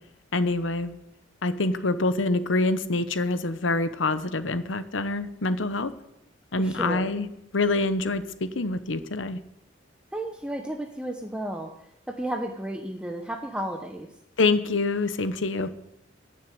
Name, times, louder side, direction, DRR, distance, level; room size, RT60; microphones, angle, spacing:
voice 1, 0.3-1.0 1.4-5.9 6.5-7.3 7.5-9.4 14.4-15.7, left 2 dB, 85° left, 12 dB, 0.9 m, -26 dB
voice 2, 6.6-7.2 10.1-11.7 12.1-14.1, right 1 dB, 5° right, 4 dB, 0.8 m, -33 dB
15.0 x 6.6 x 9.1 m, 0.82 s
head